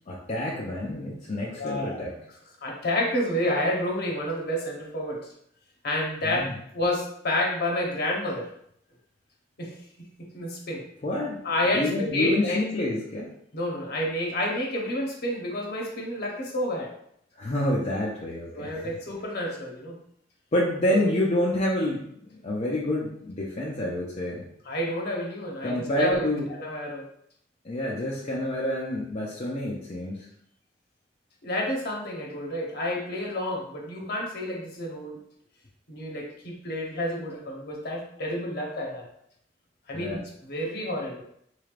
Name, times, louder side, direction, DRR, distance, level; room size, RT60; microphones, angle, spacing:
voice 1, 0.1-2.1 6.2-6.5 11.0-11.4 11.7-13.3 17.4-18.9 20.5-24.4 25.6-26.5 27.6-30.3 39.9-40.2, left 1 dB, 40° left, -5 dB, 0.5 m, -28 dB
voice 2, 1.5-2.0 2.6-5.2 5.8-8.5 9.6-10.8 11.4-12.6 13.5-16.9 18.6-20.0 20.9-21.1 24.6-26.2 26.6-27.0 31.4-35.2 35.9-39.0 39.9-41.2, left 1 dB, 60° left, -1 dB, 0.9 m, -29 dB
4.0 x 3.2 x 2.4 m, 0.70 s
head